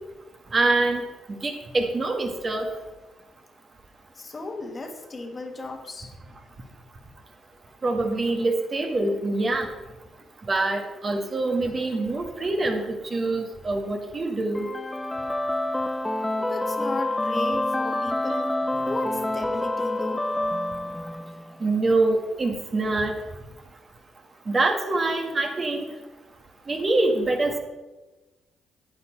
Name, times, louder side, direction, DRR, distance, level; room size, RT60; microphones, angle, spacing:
voice 1, 0.5-1.0 1.4-2.7 7.8-9.7 10.5-14.7 21.6-23.1 24.5-25.8 26.7-27.6, right 2 dB, 40° right, 3 dB, 1.6 m, -25 dB
voice 2, 4.1-6.1 16.4-18.6 18.9-20.3, left 3 dB, 35° left, 5 dB, 1.5 m, -35 dB
sound 1, 14.5-21.5, left 1 dB, 10° left, 0.6 m, -27 dB
9.5 x 8.6 x 4.5 m, 1.1 s
supercardioid pair, 65°, 0 cm